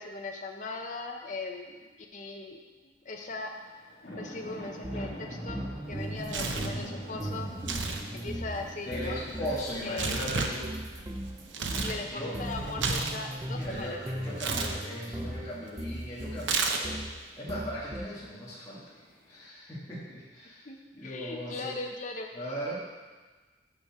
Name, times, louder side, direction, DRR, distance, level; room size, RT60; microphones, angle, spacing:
voice 1, 0.0-1.8 2.1-2.6 3.0-3.5 4.2-7.5 8.1-9.2 9.8-10.2 11.8-14.0 20.6-20.8 21.0-22.3, left 3 dB, 40° left, 1 dB, 0.8 m, -39 dB
sound 1, 3.1-19.4, left 1 dB, 60° left, 1.9 m, -47 dB
sound 2, 4.8-9.7 10.0-17.2 17.5-18.1, right 1 dB, 20° right, 0.5 m, -38 dB
Tearing, 5.9-6.8 7.6-8.0 8.3-12.0 12.3-13.8 14.4-14.7 16.4-17.1, right 4 dB, 80° right, 0.7 m, -33 dB
voice 2, 8.8-10.7 12.1-12.4 13.5-17.1 17.4-18.8 19.3-20.7 20.9-21.7 22.3-22.7, equal, 20° left, -10 dB, 1.8 m, -38 dB
6.8 x 6.5 x 4.8 m, 1.3 s
head